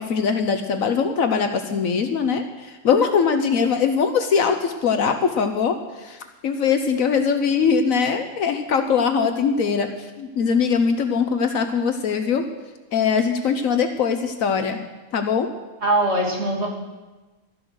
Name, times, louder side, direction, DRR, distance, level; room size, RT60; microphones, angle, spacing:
voice 1, 0.0-12.4 12.9-14.8 15.1-15.5, left 6 dB, 75° left, 7 dB, 1.3 m, -21 dB
voice 2, 15.8-16.7, right 1 dB, 50° right, -1 dB, 2.9 m, -21 dB
13.0 x 11.5 x 6.4 m, 1.2 s
omnidirectional pair, 1.5 m